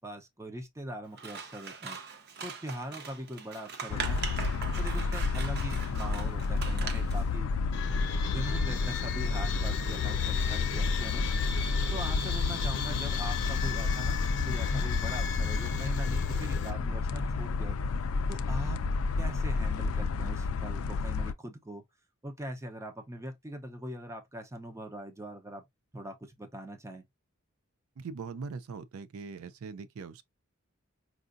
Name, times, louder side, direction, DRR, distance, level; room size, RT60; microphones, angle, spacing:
voice 1, 0.0-2.0 2.4-4.3 4.8-7.5 8.3-11.2 11.9-14.2 14.5-17.8 18.3-18.8 19.2-21.8 22.2-25.6 25.9-27.0, right 1 dB, 15° right, 0.7 m, -41 dB
Scissors, 1.1-7.2, right 5 dB, 50° right, 0.7 m, -41 dB
sound 1, 3.9-21.3, left 4 dB, 75° left, 0.4 m, -30 dB
sound 2, 7.7-16.7, left 7 dB, 55° left, 0.8 m, -37 dB
voice 2, 28.0-30.2, right 5 dB, 75° right, 0.4 m, -41 dB
4.7 x 2.5 x 2.5 m
head